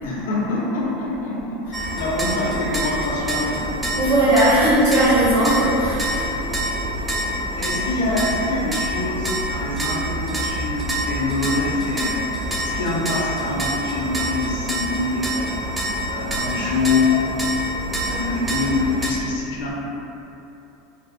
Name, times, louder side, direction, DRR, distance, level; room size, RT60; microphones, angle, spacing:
voice 1, 0.0-4.1 7.5-17.4 18.0-19.7, left 3 dB, 90° left, -5 dB, 0.5 m, -25 dB
freight train passing, 1.7-19.1, right 1 dB, 10° right, 0.4 m, -26 dB
voice 2, 4.0-6.3, right 1 dB, 85° right, -11 dB, 0.9 m, -17 dB
2.6 x 2.4 x 2.5 m, 2.9 s
supercardioid pair, 140°, 0 cm